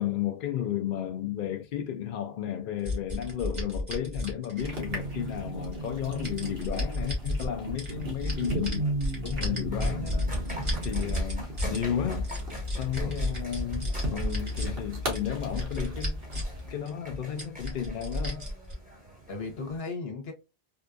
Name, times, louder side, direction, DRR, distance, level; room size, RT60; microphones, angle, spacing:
voice 1, 0.0-8.9 9.4-10.4 10.8-12.3 12.8-16.4 16.7-18.5, left 9 dB, 60° left, 0.7 m, -33 dB
sound 1, 2.8-5.0 5.6-7.5 7.8-11.8 12.1-14.7 15.1-16.6 16.9-17.0 17.4-18.7, left 1 dB, 30° right, 1.4 m, -32 dB
sound 2, 4.6-16.7, equal, 70° right, 1.4 m, -36 dB
voice 2, 4.9-5.3 9.2-9.6 10.9-11.2 12.9-13.3 14.1-14.3 14.6-14.8 19.0-20.3, left 3 dB, 75° left, 1.2 m, -38 dB
sound 3, 9.7-19.8, right 1 dB, 10° right, 1.4 m, -43 dB
3.6 x 2.4 x 2.4 m
omnidirectional pair, 1.0 m